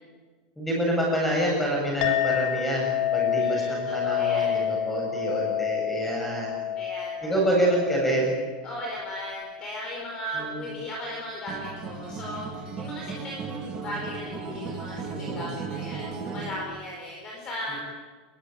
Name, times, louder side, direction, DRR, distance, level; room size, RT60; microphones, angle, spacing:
voice 1, 0.6-6.5 7.2-8.3 10.3-10.6 15.1-15.5 17.7-17.8, right 1 dB, 5° left, -2 dB, 8.0 m, -27 dB
Chink clink, 2.0-10.7, left 9 dB, 55° left, 4.2 m, -29 dB
voice 2, 3.4-4.7 6.7-7.4 8.6-17.8, equal, 20° left, -1 dB, 4.7 m, -37 dB
Acoustic guitar, 11.5-16.6, right 5 dB, 20° right, 3.0 m, -36 dB
27.5 x 22.0 x 9.3 m, 1.4 s
supercardioid pair, 180°, 4 cm